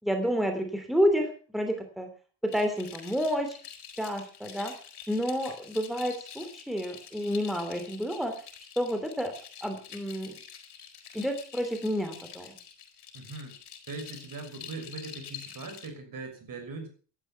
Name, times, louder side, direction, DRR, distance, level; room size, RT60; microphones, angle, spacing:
voice 1, 0.0-2.1 2.4-3.6 4.0-4.7 5.1-8.3 8.8-9.3 9.6-10.4 11.1-12.5, equal, ahead, 6 dB, 3.0 m, -29 dB
sound 1, 2.5-15.9, left 8 dB, 65° left, 4.5 m, -47 dB
voice 2, 13.1-13.5 13.9-16.9, right 3 dB, 50° right, 5 dB, 6.4 m, -40 dB
16.5 x 12.0 x 5.9 m, 0.40 s
cardioid pair, 115°, 41 cm